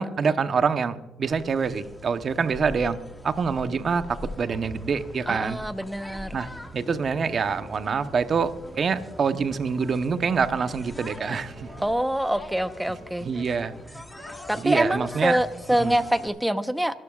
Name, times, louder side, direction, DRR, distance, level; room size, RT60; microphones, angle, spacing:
voice 1, 0.0-3.0 3.2-5.7 6.3-6.5 6.7-11.7 13.2-14.0 14.6-15.4 15.8-15.9, right 5 dB, 45° right, 10 dB, 0.9 m, -26 dB
sound 1, 1.2-16.3, left 1 dB, 10° left, 1.5 m, -42 dB
voice 2, 5.3-6.4 11.8-13.3 14.5-17.0, right 1 dB, 5° right, 10 dB, 0.9 m, -25 dB
sound 2, 7.1-7.7 8.6-9.2 10.1-10.6 11.5-12.0 12.9-13.4 14.2-14.5, right 1 dB, 70° right, 4.7 m, -48 dB
25.5 x 12.0 x 2.4 m, 1.1 s
cardioid pair, 90°, 0 cm